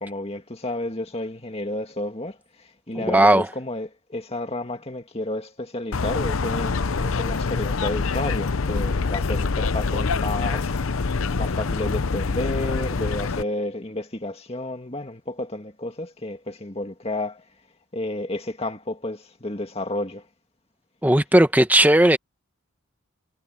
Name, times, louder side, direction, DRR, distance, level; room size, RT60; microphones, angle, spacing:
voice 1, 0.0-10.7 11.4-17.4 17.9-20.2, left 1 dB, 30° left, 2.1 m, -31 dB
voice 2, 2.9-3.5 21.0-22.2, right 1 dB, 10° right, 1.1 m, -16 dB
sound 1, 5.9-13.4, left 4 dB, 80° left, 0.7 m, -25 dB
head